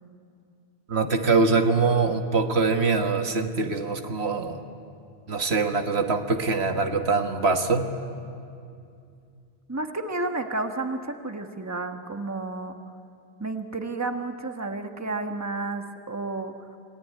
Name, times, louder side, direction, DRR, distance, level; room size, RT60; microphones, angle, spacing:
voice 1, 0.9-4.6 5.3-7.9, right 4 dB, 75° right, 5 dB, 1.7 m, -23 dB
voice 2, 9.7-12.8 13.4-16.7, right 3 dB, 15° right, 5 dB, 1.3 m, -31 dB
27.5 x 19.5 x 9.6 m, 2.4 s
omnidirectional pair, 1.1 m